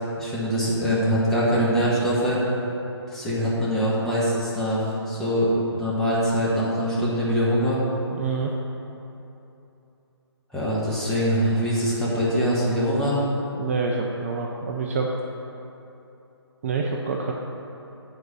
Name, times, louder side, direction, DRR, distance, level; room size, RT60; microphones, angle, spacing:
voice 1, 0.2-2.4 3.1-7.8 10.5-13.3, equal, 5° left, -9 dB, 1.2 m, -23 dB
voice 2, 8.1-8.5 13.6-15.1 16.6-17.3, right 4 dB, 30° right, 0 dB, 0.5 m, -27 dB
7.9 x 4.0 x 6.9 m, 3.0 s
figure-of-eight pair, 150°, 14 cm